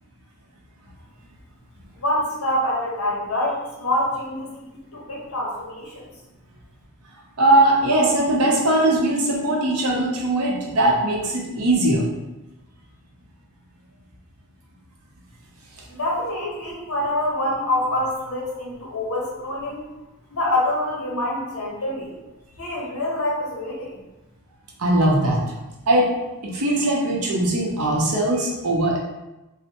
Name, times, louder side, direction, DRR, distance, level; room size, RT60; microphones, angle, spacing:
voice 1, 1.9-6.1 16.0-19.8 20.3-22.1 22.6-24.0, left 1 dB, 70° left, -3 dB, 0.9 m, -26 dB
voice 2, 7.4-12.1 24.8-25.4 25.9-26.1 26.4-29.0, right 1 dB, 80° right, -2 dB, 0.7 m, -20 dB
3.2 x 2.0 x 2.9 m, 1.0 s
head